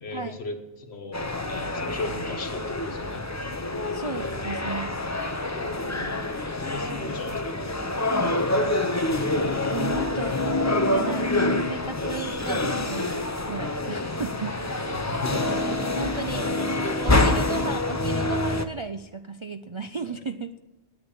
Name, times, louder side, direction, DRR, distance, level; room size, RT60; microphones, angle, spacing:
voice 1, 0.0-1.2 1.5-3.2 5.5-6.3 6.6-7.8 12.6-12.9 14.7-15.8 16.3-17.6 20.1-20.2, left 2 dB, 70° left, 5 dB, 1.7 m, -37 dB
sound 1, 1.1-18.7, left 2 dB, 15° left, 0.7 m, -26 dB
voice 2, 3.9-5.0 9.7-13.1 13.5-15.1 15.3-16.4 17.0-20.5, right 4 dB, 45° right, 8 dB, 0.4 m, -35 dB
9.9 x 8.8 x 8.8 m, 0.99 s
omnidirectional pair, 1.1 m